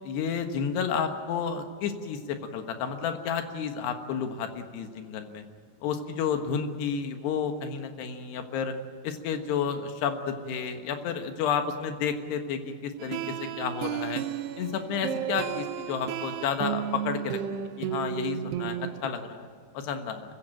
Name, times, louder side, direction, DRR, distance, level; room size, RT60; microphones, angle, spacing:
voice 1, 0.0-5.5 5.8-8.7 9.0-14.2 14.6-17.4 17.8-19.5 19.8-20.2, left 6 dB, 85° left, 6 dB, 3.6 m, -31 dB
sound 1, 13.0-19.1, right 11 dB, 85° right, 3.0 m, -33 dB
24.5 x 15.5 x 9.0 m, 2.1 s
omnidirectional pair, 4.7 m